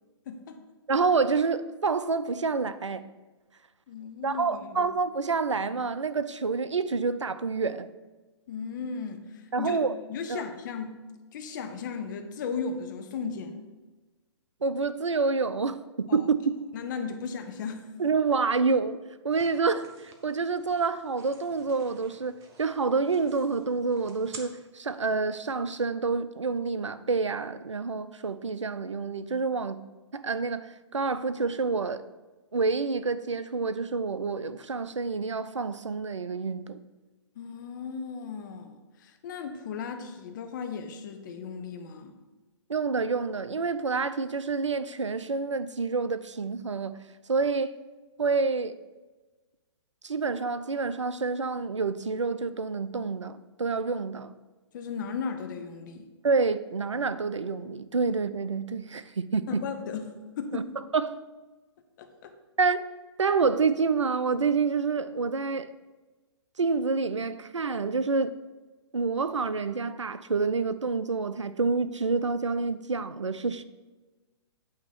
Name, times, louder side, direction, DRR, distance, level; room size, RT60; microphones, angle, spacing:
voice 1, 0.3-0.6 3.9-4.9 8.5-9.8 10.1-11.0 11.3-13.6 16.1-16.2 16.7-17.9 37.4-42.1 54.7-56.1 59.5-60.7 62.0-62.3, left 5 dB, 40° left, 0.8 m, -36 dB
voice 2, 0.9-3.0 4.2-7.9 9.5-9.9 10.3-10.4 14.6-16.5 18.0-19.0 19.2-29.8 30.1-32.1 32.5-36.8 42.7-47.0 47.3-47.7 48.2-48.7 50.0-54.3 56.2-59.6 60.5-60.6 60.9-61.2 62.6-62.9 63.2-65.7 66.6-68.3 68.9-73.6, right 4 dB, 85° right, 0.4 m, -28 dB
sound 1, 19.3-24.4, right 5 dB, 20° right, 0.8 m, -51 dB
8.6 x 2.9 x 5.8 m
figure-of-eight pair, 125°, 15 cm